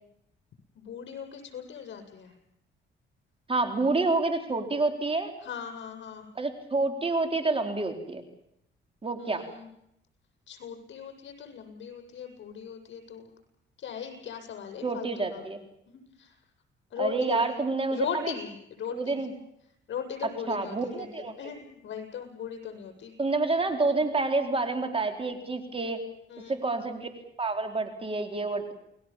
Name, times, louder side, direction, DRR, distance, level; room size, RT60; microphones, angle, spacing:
voice 1, 0.7-2.3 5.4-6.3 9.2-9.7 10.5-13.3 13.8-15.4 15.9-16.3 16.9-17.6 17.9-19.2 19.9-23.1 26.3-26.6, left 8 dB, 70° left, 7 dB, 7.6 m, -38 dB
voice 2, 3.5-5.3 6.4-8.2 9.0-9.4 14.8-15.6 17.0-18.3 18.9-19.3 20.5-21.4 23.2-26.0 26.5-27.1 27.4-28.7, right 3 dB, 30° right, 5 dB, 4.3 m, -28 dB
29.5 x 20.5 x 7.4 m, 0.78 s
cardioid pair, 90°, 20 cm